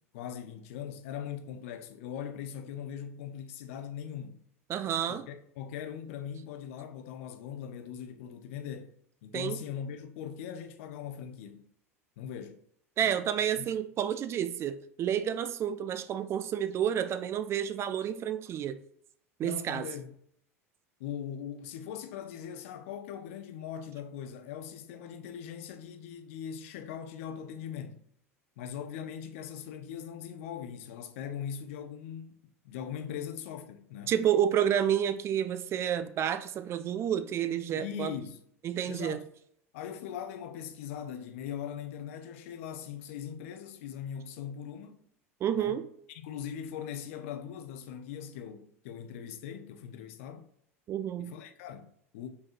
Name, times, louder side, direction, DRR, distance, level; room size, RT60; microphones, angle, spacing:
voice 1, 0.1-4.4 5.1-8.9 9.2-11.7 12.2-12.6 13.0-13.2 13.6-13.7 19.4-20.1 21.0-28.0 28.6-32.3 32.6-34.1 37.8-38.4 38.9-39.3 39.7-45.0 45.5-50.5 51.2-52.3, left 8 dB, 60° left, 0.5 m, -40 dB
voice 2, 4.7-5.2 9.3-9.6 13.0-18.8 19.4-19.9 34.1-38.1 38.6-39.2 45.4-45.9 50.9-51.3, right 9 dB, 35° right, 0.3 m, -30 dB
5.3 x 3.3 x 2.5 m
figure-of-eight pair, 80°, 8 cm